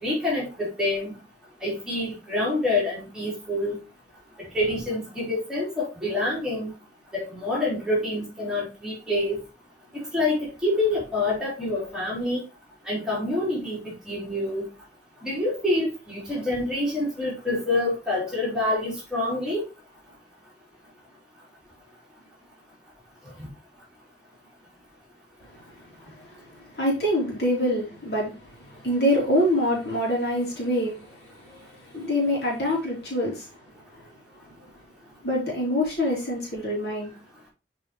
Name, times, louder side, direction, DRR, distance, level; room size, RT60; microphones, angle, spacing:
voice 1, 0.0-1.1 1.6-3.8 4.5-6.7 7.1-9.4 10.1-12.4 12.9-14.7 15.2-19.6 23.4-23.5, left 2 dB, 5° right, -6 dB, 3.4 m, -27 dB
voice 2, 25.4-25.8 26.1-26.4 26.7-33.5 33.9-34.1 35.2-37.1, equal, 60° left, -3 dB, 3.3 m, -26 dB
7.6 x 4.8 x 3.2 m, 0.29 s
head